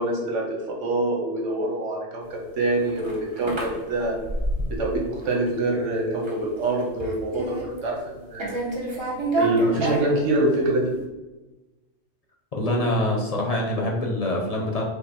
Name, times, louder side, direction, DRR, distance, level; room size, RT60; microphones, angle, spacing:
voice 1, 0.0-4.1 4.7-8.5 9.3-10.9, right 2 dB, 80° right, -1 dB, 1.3 m, -25 dB
sound 1, 2.5-5.0 5.2-5.8 6.1-6.4 6.7-8.1 8.4-10.7, right 1 dB, 30° right, 0.7 m, -29 dB
voice 2, 12.5-14.9, left 1 dB, 35° left, 0 dB, 0.8 m, -25 dB
5.3 x 2.1 x 4.3 m, 1.1 s
omnidirectional pair, 1.2 m